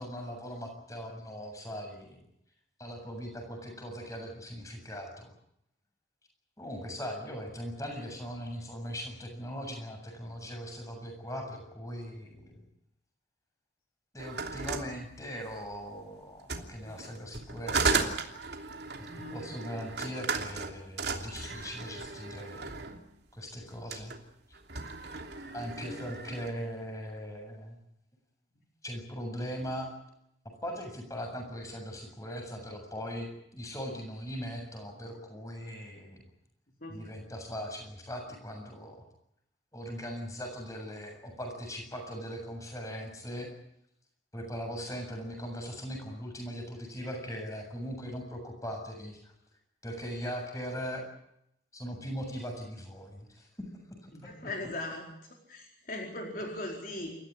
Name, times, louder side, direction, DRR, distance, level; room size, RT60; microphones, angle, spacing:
voice 1, 0.0-2.2 2.8-5.3 6.6-12.6 14.1-18.1 19.0-22.9 23.3-24.1 25.5-27.8 28.8-29.9 30.6-36.2 36.9-39.1 39.7-43.5 44.3-49.3 49.8-51.0 51.7-53.5 54.0-54.5, equal, 20° left, 3 dB, 7.4 m, -40 dB
sound 1, 14.2-15.8 16.4-23.0 23.7-24.2 24.5-26.5, right 4 dB, 60° right, 3.0 m, -35 dB
voice 2, 19.1-19.4 25.8-26.0 36.8-37.1 54.1-55.1 55.5-57.1, left 1 dB, 50° left, 0 dB, 4.6 m, -39 dB
29.0 x 15.0 x 9.8 m, 0.77 s
head